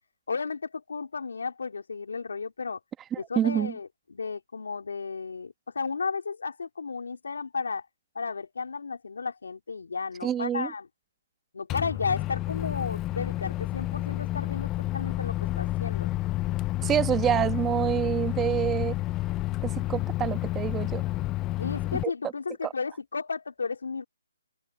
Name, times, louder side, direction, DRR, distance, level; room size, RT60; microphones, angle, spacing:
voice 1, 0.3-2.8 3.2-7.9 8.2-10.9 11.5-16.1 21.6-24.0, left 5 dB, 80° left, 3.4 m, -33 dB
voice 2, 3.1-3.7 10.2-10.7 16.8-19.0 19.6-21.0 22.0-22.1 22.6-22.7, right 10 dB, 10° right, 1.1 m, -27 dB
Microwave oven, 11.7-22.0, left 17 dB, 15° left, 0.3 m, -30 dB
open air
hypercardioid pair, 155°, 0 cm